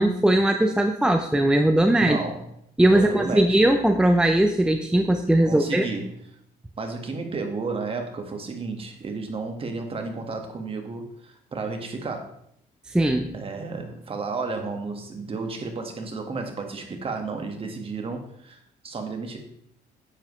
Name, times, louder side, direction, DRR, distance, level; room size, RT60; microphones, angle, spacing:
voice 1, 0.0-2.2 2.8-5.8 12.9-13.3, right 1 dB, 5° right, 5 dB, 0.6 m, -20 dB
voice 2, 2.0-2.5 2.9-3.5 5.4-6.1 6.8-12.3 13.3-18.6 18.8-19.5, right 4 dB, 35° right, 4 dB, 1.6 m, -32 dB
10.0 x 7.8 x 3.2 m, 0.74 s
cardioid pair, 110°, 17 cm